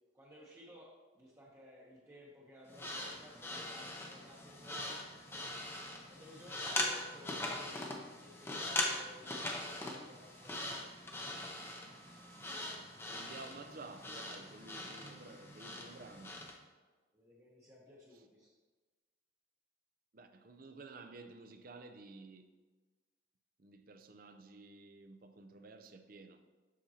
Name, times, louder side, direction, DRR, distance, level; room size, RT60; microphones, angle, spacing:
voice 1, 0.1-5.0 6.1-10.7 17.1-18.5, equal, 15° right, 0.8 m, -57 dB
sound 1, 2.7-16.6, left 1 dB, 10° left, 0.6 m, -41 dB
voice 2, 13.1-16.4 18.1-18.2 20.1-22.5 23.6-26.4, right 3 dB, 45° right, 0.5 m, -53 dB
7.5 x 6.6 x 2.8 m
head